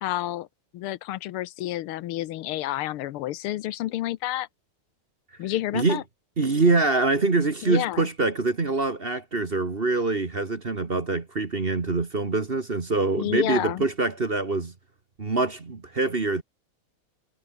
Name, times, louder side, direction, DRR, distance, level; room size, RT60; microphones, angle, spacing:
voice 1, 0.0-0.5 0.7-4.5 5.4-6.0 7.6-8.1 13.2-13.8, left 14 dB, 80° left, 1.6 m, -29 dB
voice 2, 6.4-14.7 15.2-16.4, right 3 dB, 30° right, 1.6 m, -24 dB
omnidirectional pair, 2.4 m